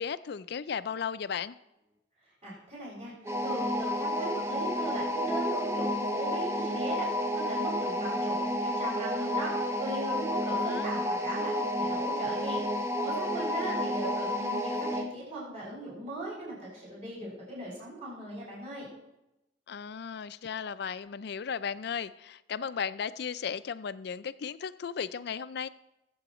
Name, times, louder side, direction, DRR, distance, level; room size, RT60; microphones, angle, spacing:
voice 1, 0.0-1.5 10.5-10.9 19.7-25.7, left 7 dB, 60° left, 15 dB, 0.4 m, -35 dB
voice 2, 2.4-3.1 3.4-18.9, right 1 dB, 40° right, -6 dB, 5.3 m, -39 dB
sound 1, 3.3-15.1, equal, 15° right, 0.7 m, -31 dB
21.5 x 7.9 x 3.0 m, 0.94 s
head